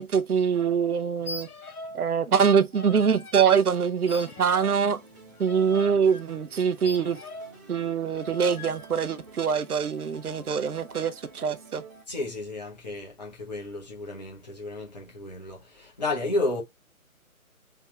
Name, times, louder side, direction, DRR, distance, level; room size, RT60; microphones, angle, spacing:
voice 1, 0.0-1.5 1.9-5.0 5.4-7.2 7.7-11.8, right 6 dB, 85° right, 0.6 m, -24 dB
sound 1, 1.2-2.1 2.3-3.4 4.1-7.6 8.2-8.9, left 2 dB, 75° left, 0.8 m, -42 dB
sound 2, 4.0-12.0, right 3 dB, 15° right, 0.6 m, -50 dB
voice 2, 12.1-16.6, left 2 dB, 30° left, 0.8 m, -32 dB
3.5 x 2.3 x 3.0 m
figure-of-eight pair, 145°, 44 cm